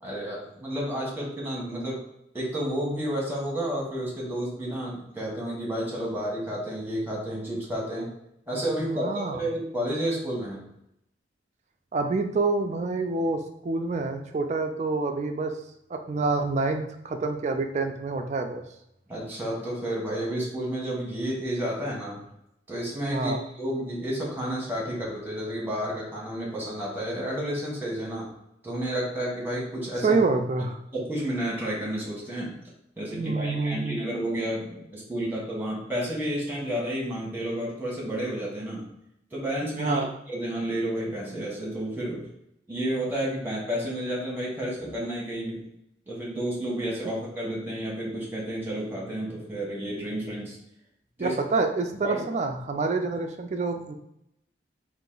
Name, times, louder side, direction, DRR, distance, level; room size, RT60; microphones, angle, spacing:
voice 1, 0.0-2.1 2.3-8.1 8.5-10.7 19.1-22.2 22.7-28.3 28.6-30.2 30.9-32.6 33.0-38.9 39.3-42.3 42.7-45.6 46.1-50.6 51.2-51.3 52.0-52.2, right 1 dB, 10° right, -4 dB, 1.2 m, -31 dB
voice 2, 8.9-9.4 11.9-15.5 15.9-18.6 23.1-23.4 30.0-30.8 33.1-34.0 39.8-40.1 51.2-53.9, right 3 dB, 40° right, 5 dB, 0.3 m, -27 dB
3.9 x 2.5 x 3.8 m, 0.81 s
head